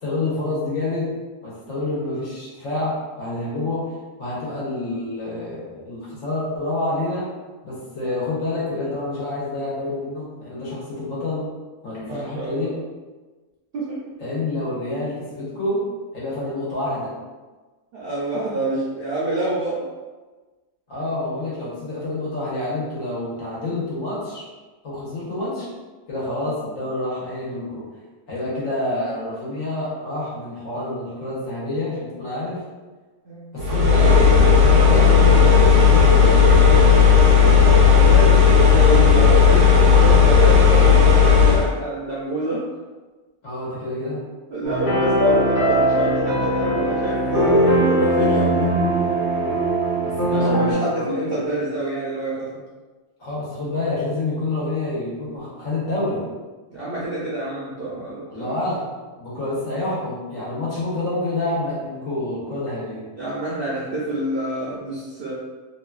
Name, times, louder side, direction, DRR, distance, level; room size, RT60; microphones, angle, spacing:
voice 1, 0.0-1.1 1.4-3.8 4.2-7.3 7.6-11.5 11.8-12.7 14.2-15.8 16.1-17.1 20.9-24.5 24.8-25.7 26.1-27.8 28.3-32.6 33.5-34.2 34.5-37.2 43.4-44.2 50.0-51.1 53.2-56.3 58.3-58.9 59.2-63.1, left 2 dB, 65° left, -8 dB, 1.4 m, -28 dB
voice 2, 12.0-12.7 13.7-14.0 17.9-19.8 33.2-33.5 37.9-42.7 44.5-48.7 50.3-52.6 56.7-58.5 63.2-65.3, right 2 dB, 60° right, -8 dB, 0.6 m, -28 dB
sound 1, 33.6-41.7, left 6 dB, 90° right, 1.1 m, -13 dB
sound 2, 44.6-50.7, right 1 dB, 45° left, 0.7 m, -20 dB
2.9 x 2.4 x 2.3 m, 1.3 s
omnidirectional pair, 1.5 m